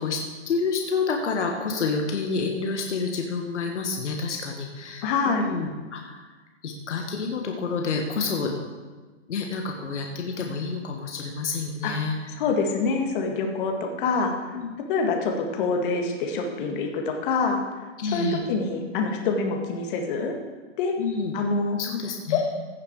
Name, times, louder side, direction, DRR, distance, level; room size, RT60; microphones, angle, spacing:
voice 1, 0.0-6.2 6.6-8.5 9.3-12.3 14.5-14.7 18.0-18.4 21.0-21.3 21.8-22.6, left 4 dB, 70° left, 2 dB, 1.6 m, -29 dB
voice 2, 5.0-5.5 11.8-11.9 12.4-14.3 14.9-17.6 18.1-20.3 20.8-21.0 21.3-21.8 22.3-22.6, left 4 dB, 45° left, 2 dB, 2.0 m, -25 dB
16.0 x 6.8 x 4.7 m, 1.3 s
hypercardioid pair, 120°, 36 cm